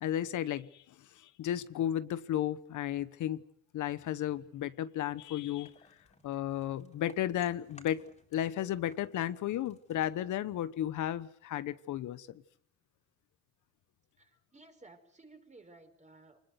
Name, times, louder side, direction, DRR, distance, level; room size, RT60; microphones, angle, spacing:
voice 1, 0.0-3.5 3.7-5.7 6.2-8.1 8.3-12.4, left 11 dB, 75° left, 14 dB, 1.1 m, -34 dB
sound 1, 5.6-8.6 8.8-11.2, left 3 dB, 20° left, 4.2 m, -60 dB
voice 2, 14.2-16.4, right 2 dB, 25° right, 6 dB, 5.2 m, -56 dB
25.5 x 20.0 x 8.0 m, 0.64 s
cardioid pair, 90°, 30 cm